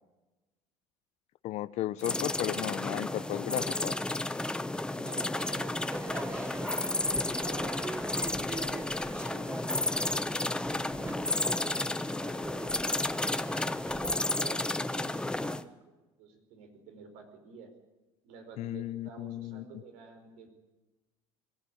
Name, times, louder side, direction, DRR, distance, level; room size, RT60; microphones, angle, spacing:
voice 1, 1.4-3.9 18.6-19.6, left 14 dB, 60° left, 17 dB, 0.8 m, -35 dB
sound 1, 2.0-15.6, left 2 dB, 5° left, 0.8 m, -32 dB
voice 2, 4.9-7.7 8.4-9.7 10.6-13.4 14.0-15.7 16.2-17.7 18.2-20.5, right 5 dB, 75° right, 6 dB, 4.6 m, -50 dB
Crowd / Fireworks, 5.9-14.2, right 3 dB, 15° right, 1.2 m, -44 dB
22.0 x 15.0 x 8.6 m, 1.1 s
supercardioid pair, 95°, 12 cm